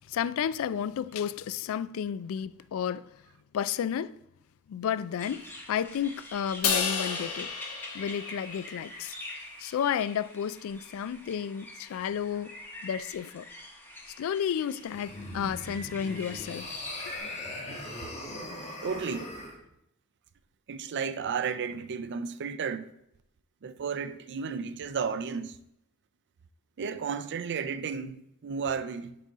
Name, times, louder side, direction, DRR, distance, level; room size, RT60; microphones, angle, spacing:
voice 1, 0.1-3.1 3.5-4.1 4.7-7.5 7.9-9.2 9.6-12.5 12.8-13.5 14.2-16.7, left 8 dB, 65° left, 0.3 m, -32 dB
sound 1, 5.2-17.2, left 1 dB, 10° left, 1.0 m, -46 dB
Crash cymbal, 6.6-9.0, left 6 dB, 90° left, 1.2 m, -31 dB
sound 2, 14.8-19.6, left 1 dB, 30° left, 1.5 m, -40 dB
voice 2, 18.8-19.3 20.7-22.9 23.6-25.6 26.8-29.2, right 6 dB, 55° right, 0.4 m, -33 dB
11.0 x 4.1 x 3.6 m
head